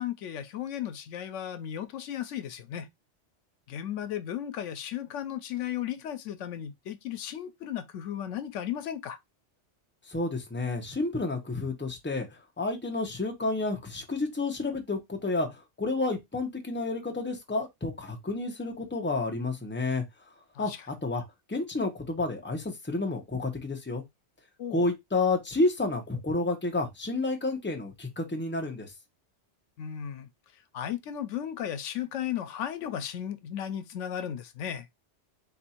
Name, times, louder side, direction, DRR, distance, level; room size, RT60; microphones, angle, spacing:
voice 1, 0.0-2.9 3.7-9.2 20.5-20.9 24.6-24.9 29.8-30.3 30.7-34.9, left 10 dB, 85° left, 1.0 m, -35 dB
voice 2, 10.1-12.3 12.6-20.0 20.6-20.7 21.0-21.2 21.5-24.0 24.7-28.9, left 2 dB, 10° left, 0.8 m, -30 dB
4.0 x 2.6 x 4.2 m
omnidirectional pair, 1.2 m